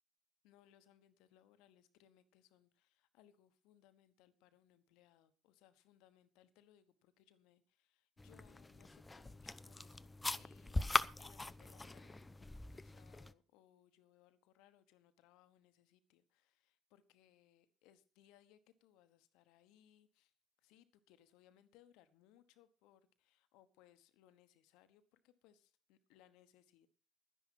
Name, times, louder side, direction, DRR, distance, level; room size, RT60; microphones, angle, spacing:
voice 1, 0.4-20.3 20.6-26.9, left 11 dB, 65° left, 1.1 m, -69 dB
sound 1, 8.2-13.3, left 2 dB, 15° left, 0.6 m, -41 dB
11.5 x 10.5 x 5.9 m
figure-of-eight pair, 55°, 0 cm